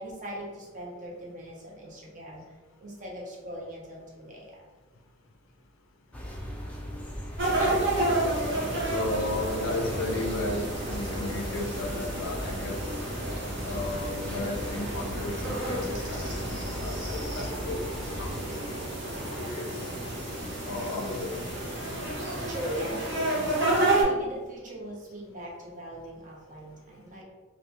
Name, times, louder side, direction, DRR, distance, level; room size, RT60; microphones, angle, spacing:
voice 1, 0.0-4.6 13.4-13.8 22.2-23.6 24.0-27.2, equal, 40° right, -3 dB, 0.8 m, -41 dB
sound 1, 6.1-18.5, equal, 5° left, 0.3 m, -38 dB
sound 2, 7.4-24.0, right 1 dB, 60° right, 1.2 m, -31 dB
voice 2, 8.9-12.9 13.6-17.9 18.2-18.3 18.6-19.9 20.7-21.5, left 2 dB, 75° left, 3 dB, 0.5 m, -34 dB
2.8 x 2.5 x 3.3 m, 1.3 s
head